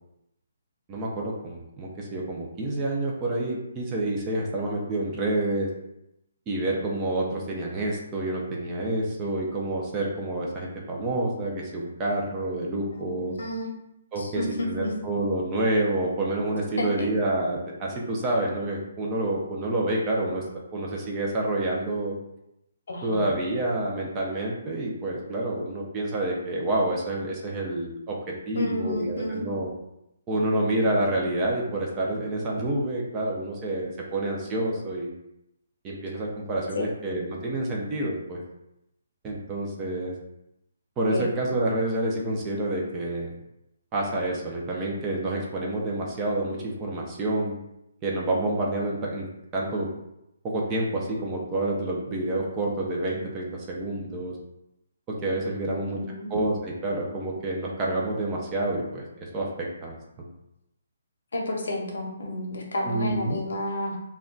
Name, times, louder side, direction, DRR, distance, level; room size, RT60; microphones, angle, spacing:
voice 1, 0.9-5.7 6.5-13.4 14.1-20.4 20.7-22.1 23.0-28.2 28.5-29.7 30.3-35.1 35.8-38.4 39.2-40.1 41.0-43.3 43.9-47.6 48.0-49.3 49.5-49.9 50.4-54.4 55.2-56.0 56.3-59.0 59.3-60.3 62.8-63.4, right 1 dB, 15° right, -2 dB, 0.4 m, -28 dB
voice 2, 12.9-13.7 14.2-14.9 16.8-17.1 22.9-23.2 28.5-29.5 36.7-36.8 41.1-41.2 55.5-56.3 61.3-64.0, left 1 dB, 75° left, 0 dB, 0.7 m, -31 dB
2.2 x 2.1 x 3.7 m, 0.84 s
hypercardioid pair, 170°, 0 cm